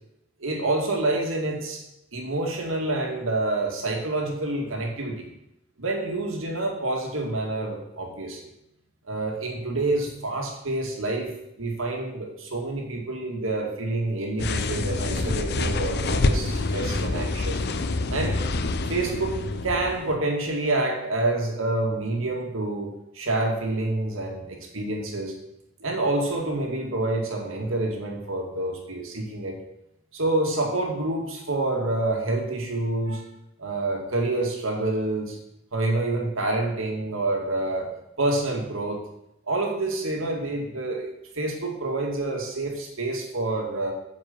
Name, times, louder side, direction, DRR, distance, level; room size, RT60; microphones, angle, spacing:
voice 1, 0.4-1.8 2.1-5.3 5.8-8.4 9.1-11.3 11.6-17.6 18.1-18.4 18.9-25.3 25.8-29.6 30.1-33.2 33.6-35.4 35.7-37.9 38.2-39.0 39.5-43.9, right 2 dB, 75° right, 1 dB, 2.2 m, -27 dB
sound 1, 14.4-20.1, left 2 dB, 55° left, 0.6 m, -26 dB
9.1 x 5.3 x 7.1 m, 0.83 s
head